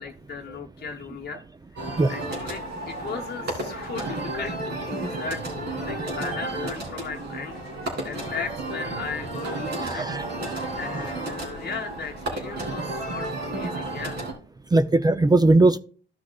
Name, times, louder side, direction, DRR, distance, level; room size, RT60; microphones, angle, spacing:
voice 1, 0.0-1.4 1.7-1.8 2.1-10.0 10.6-14.2, left 5 dB, 55° left, 1 dB, 0.9 m, -37 dB
sound 1, 1.8-14.3, right 2 dB, 55° right, 3.0 m, -32 dB
voice 2, 9.7-10.5 14.7-15.8, right 2 dB, 20° right, 11 dB, 0.5 m, -19 dB
14.0 x 6.1 x 2.3 m, 0.41 s
cardioid pair, 90°, 20 cm